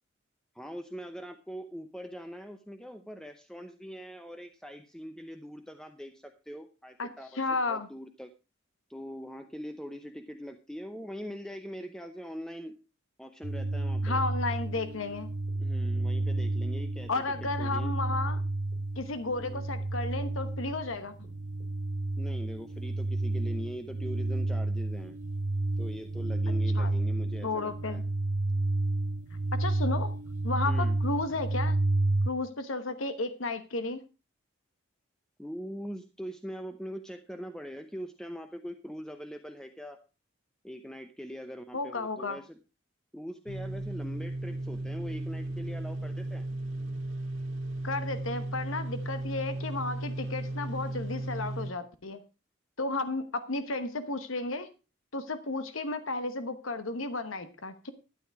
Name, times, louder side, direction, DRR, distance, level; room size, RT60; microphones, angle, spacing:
voice 1, 0.5-8.3 8.9-12.7 13.2-14.2 15.6-17.9 19.4-19.6 22.2-25.2 25.8-28.0 30.6-31.0 35.4-40.0 40.6-42.6 43.1-46.4, equal, 5° left, 7 dB, 0.7 m, -42 dB
voice 2, 7.3-7.9 14.0-15.3 17.1-18.4 19.0-21.1 26.7-26.9 27.4-28.0 29.6-30.1 30.4-31.8 32.2-34.0 41.7-42.4 47.8-52.2 52.8-54.7 55.1-57.9, left 3 dB, 80° left, 10 dB, 1.1 m, -33 dB
sound 1, 13.4-32.3, right 2 dB, 40° right, 0.6 m, -31 dB
sound 2, 14.0-21.7, left 1 dB, 45° left, 5.4 m, -57 dB
sound 3, 43.5-51.7, right 2 dB, 65° right, 2.2 m, -35 dB
12.5 x 9.3 x 4.6 m, 0.31 s
head